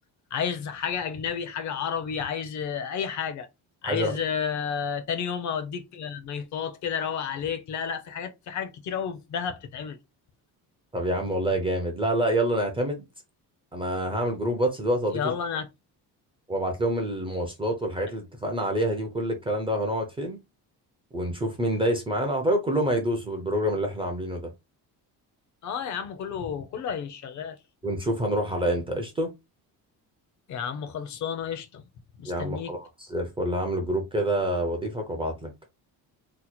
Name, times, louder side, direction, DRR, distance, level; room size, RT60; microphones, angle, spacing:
voice 1, 0.3-3.5 3.8-10.0 15.1-15.7 25.6-27.6 30.5-31.8 32.2-32.7, left 7 dB, 50° left, 0.5 m, -31 dB
voice 2, 3.8-4.2 10.9-13.0 13.7-15.2 16.5-20.4 21.1-24.5 27.8-29.3 32.2-35.5, right 1 dB, 15° right, 0.4 m, -27 dB
2.8 x 2.1 x 4.1 m
cardioid pair, 180°, 39 cm